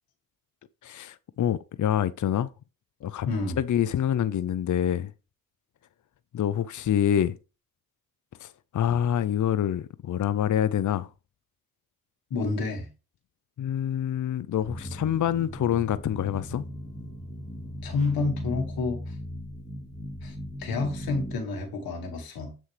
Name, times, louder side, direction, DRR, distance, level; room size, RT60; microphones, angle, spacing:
voice 1, 0.8-2.5 3.0-3.3 3.6-5.1 6.3-7.4 8.4-11.1 13.6-16.6, left 10 dB, 55° left, 0.6 m, -26 dB
voice 2, 3.2-3.6 12.3-12.9 17.8-19.1 20.2-22.5, left 3 dB, 90° left, 1.6 m, -29 dB
sound 1, 14.6-21.3, left 1 dB, 20° left, 3.0 m, -37 dB
7.3 x 6.1 x 3.3 m
cardioid pair, 55°, 35 cm